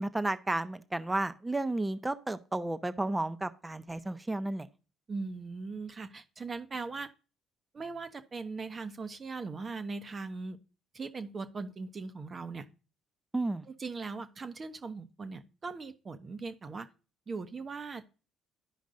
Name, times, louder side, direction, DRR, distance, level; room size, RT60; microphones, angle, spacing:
voice 1, 0.0-4.7 13.3-13.6, right 2 dB, 15° right, 12 dB, 0.8 m, -32 dB
voice 2, 5.1-7.1 7.7-10.6 10.9-12.6 13.8-16.9 17.3-18.1, right 4 dB, 35° right, 9 dB, 1.0 m, -39 dB
12.5 x 5.1 x 2.6 m, 0.34 s
hypercardioid pair, 60°, 0 cm